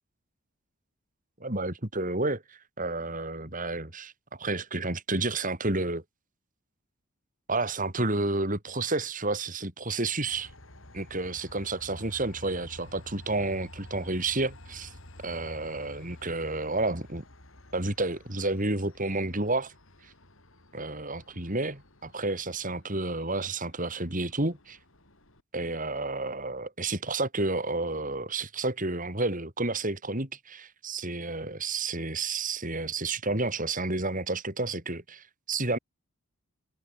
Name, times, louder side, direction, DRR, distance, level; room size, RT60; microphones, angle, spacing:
voice 1, 1.4-6.0 7.5-10.5 10.9-14.9 15.2-17.2 17.7-19.7 20.0-20.1 20.7-24.8 25.5-35.8, right 2 dB, 35° right, 4.2 m, -31 dB
Train, 10.3-25.4, left 1 dB, 60° left, 4.9 m, -51 dB
head